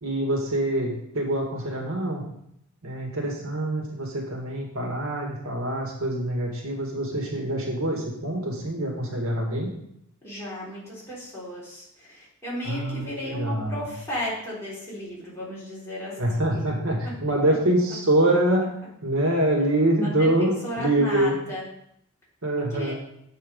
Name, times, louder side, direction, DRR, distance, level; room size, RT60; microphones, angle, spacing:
voice 1, 0.0-2.2 2.8-9.7 12.7-13.8 16.2-18.7 19.0-21.4 22.4-22.9, right 1 dB, 85° right, 0 dB, 1.9 m, -25 dB
voice 2, 10.2-16.6 17.0-17.1 20.0-21.6 22.5-22.9, equal, 15° left, -8 dB, 3.7 m, -35 dB
7.6 x 5.6 x 5.2 m, 0.75 s
head